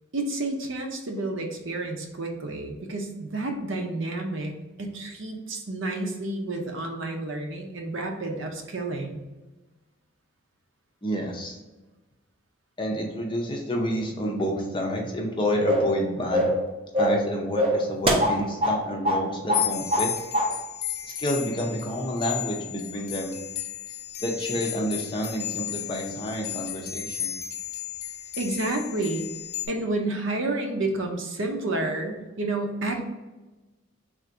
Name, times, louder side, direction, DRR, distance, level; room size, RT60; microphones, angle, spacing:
voice 1, 0.1-9.2 28.4-29.3 29.7-33.0, right 2 dB, 65° right, 3 dB, 0.6 m, -30 dB
voice 2, 11.0-11.6 12.8-16.5 17.0-20.1 21.2-23.4 24.2-27.3, equal, 25° left, 0 dB, 0.5 m, -29 dB
sound 1, 15.7-16.0 16.3-16.6 16.9-17.3 17.6-18.8 19.0-19.2 19.5-20.1 20.3-20.5, equal, 25° right, 0.5 m, -23 dB
sound 2, 19.5-29.7, left 11 dB, 90° left, 0.6 m, -34 dB
3.7 x 2.5 x 4.4 m, 1.1 s
head